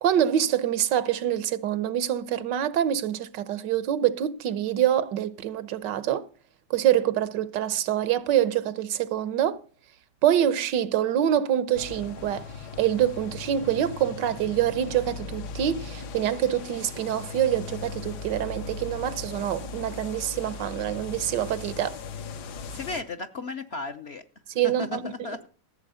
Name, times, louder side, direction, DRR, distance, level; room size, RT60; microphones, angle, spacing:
voice 1, 0.0-6.3 6.7-9.6 10.2-12.5 12.8-22.0 24.5-25.1, right 11 dB, 85° right, 1.5 m, -25 dB
sound 1, 11.7-23.0, left 4 dB, 70° left, 1.5 m, -38 dB
voice 2, 22.7-24.2 24.6-25.5, left 3 dB, 50° left, 0.8 m, -35 dB
14.5 x 7.7 x 5.5 m
omnidirectional pair, 1.9 m